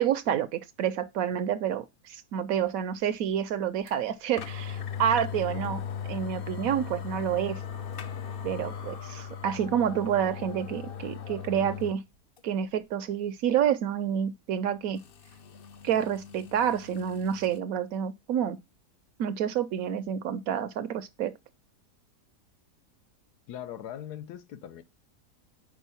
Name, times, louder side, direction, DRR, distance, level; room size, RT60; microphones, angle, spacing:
voice 1, 0.0-5.8 6.1-7.6 8.4-12.0 12.4-15.0 15.8-18.6 19.2-21.3, right 9 dB, 70° right, 0.9 m, -28 dB
sound 1, 3.9-4.0 4.4-12.0 12.4-12.5 15.0-17.6, left 7 dB, 60° left, 0.6 m, -38 dB
voice 2, 23.5-24.8, left 10 dB, 75° left, 1.2 m, -40 dB
5.4 x 4.8 x 5.5 m
omnidirectional pair, 1.7 m